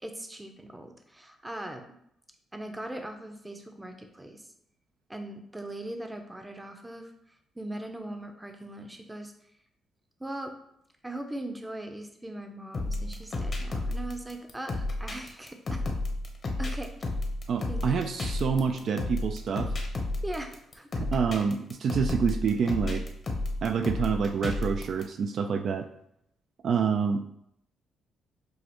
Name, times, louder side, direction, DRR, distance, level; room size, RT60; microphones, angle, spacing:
voice 1, 0.0-1.9 2.5-4.5 5.1-9.3 10.2-10.5 11.0-15.8 16.6-16.9 17.7-18.0 20.2-21.1, right 1 dB, 10° right, 5 dB, 0.6 m, -40 dB
sound 1, 12.7-25.0, left 2 dB, 40° left, 0.8 m, -32 dB
voice 2, 17.5-19.7 21.0-23.0 23.6-25.9 26.6-27.2, right 6 dB, 60° right, 6 dB, 0.3 m, -27 dB
6.2 x 2.4 x 2.9 m, 0.74 s
cardioid pair, 90°, 0 cm